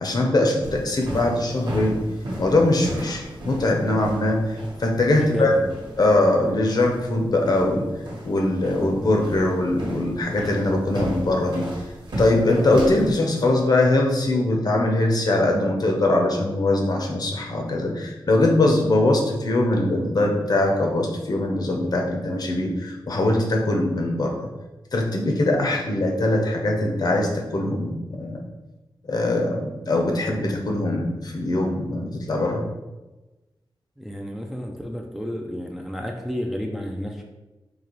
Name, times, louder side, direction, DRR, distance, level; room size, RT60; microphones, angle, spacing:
voice 1, 0.0-2.0 2.4-5.5 6.0-7.9 8.2-11.7 12.2-24.5 24.9-28.4 29.1-32.6, left 2 dB, 50° left, 1 dB, 0.7 m, -22 dB
sound 1, 0.6-13.1, equal, 60° right, 1.1 m, -35 dB
voice 2, 5.2-5.7 34.0-37.2, equal, 5° right, 2 dB, 0.3 m, -31 dB
4.0 x 2.9 x 3.0 m, 1.1 s
wide cardioid pair, 130°, 8 cm